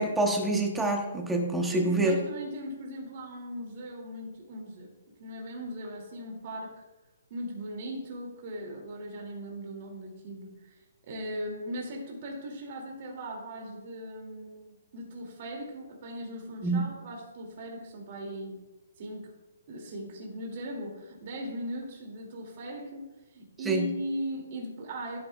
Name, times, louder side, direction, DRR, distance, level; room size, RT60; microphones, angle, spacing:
voice 1, 0.0-2.3 16.6-16.8 23.7-23.9, right 2 dB, 5° right, 1 dB, 0.8 m, -26 dB
voice 2, 1.7-4.9 5.2-6.8 7.3-10.8 11.0-18.6 19.0-19.3 19.7-25.2, equal, 30° right, 0 dB, 2.4 m, -38 dB
15.0 x 9.0 x 2.3 m, 1.1 s
hypercardioid pair, 180°, 0 cm